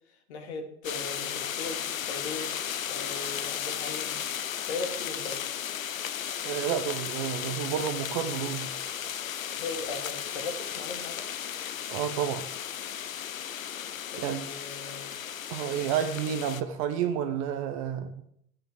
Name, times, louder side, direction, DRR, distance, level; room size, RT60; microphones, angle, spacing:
voice 1, 0.3-4.2 4.7-5.5 9.5-11.3 14.1-15.1, left 3 dB, 45° left, 5 dB, 3.0 m, -38 dB
sound 1, 0.8-16.6, left 9 dB, 60° left, 0.9 m, -35 dB
voice 2, 6.4-8.7 11.9-12.5 14.2-14.4 15.5-18.1, right 9 dB, 25° right, 9 dB, 0.7 m, -30 dB
13.0 x 8.9 x 7.6 m, 0.71 s
figure-of-eight pair, 110°, 45 cm